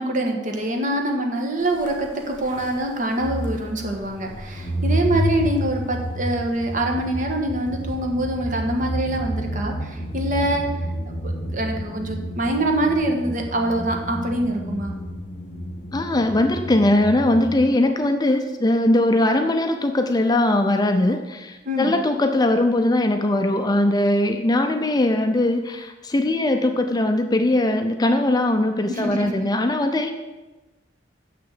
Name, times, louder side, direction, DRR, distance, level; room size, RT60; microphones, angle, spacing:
voice 1, 0.0-10.7 11.2-14.9 21.6-22.0 28.9-29.3, right 1 dB, 45° right, 2 dB, 1.5 m, -24 dB
sound 1, 1.7-17.6, equal, 65° left, 2.0 m, -30 dB
voice 2, 15.9-30.1, left 1 dB, 20° left, 6 dB, 0.5 m, -20 dB
6.7 x 6.6 x 7.8 m, 1.1 s
head